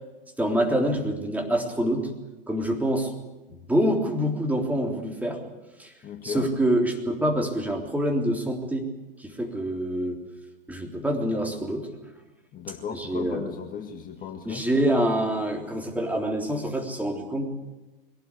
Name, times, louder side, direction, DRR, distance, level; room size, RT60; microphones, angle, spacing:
voice 1, 0.4-2.1 2.5-3.1 3.5-5.4 5.8-5.9 6.2-8.9 9.2-10.2 10.7-11.9 12.9-13.5 14.5-17.5, right 1 dB, 5° right, 2 dB, 3.6 m, -26 dB
voice 2, 6.0-6.5 12.5-14.7, left 6 dB, 30° left, 4 dB, 2.0 m, -36 dB
22.0 x 18.0 x 8.5 m, 1.1 s
hypercardioid pair, 100°, 30 cm